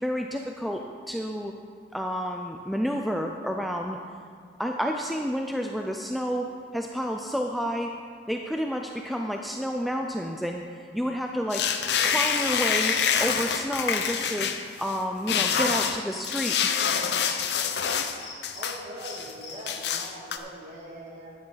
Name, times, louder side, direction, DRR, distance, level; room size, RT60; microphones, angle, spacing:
voice 1, 0.0-1.5 1.9-4.0 4.6-8.0 8.3-11.7 12.0-14.5 14.8-16.7, equal, ahead, 2 dB, 0.4 m, -30 dB
sound 1, 11.5-15.0 15.3-18.2 18.4-19.3 19.7-20.4, left 7 dB, 65° left, 0.7 m, -26 dB
Cricket, 15.4-16.6 16.8-16.9 17.2-18.7 19.0-19.5, left 5 dB, 25° left, 3.2 m, -41 dB
voice 2, 18.5-21.4, right 1 dB, 40° right, -4 dB, 2.3 m, -41 dB
12.5 x 9.6 x 3.9 m, 2.1 s
head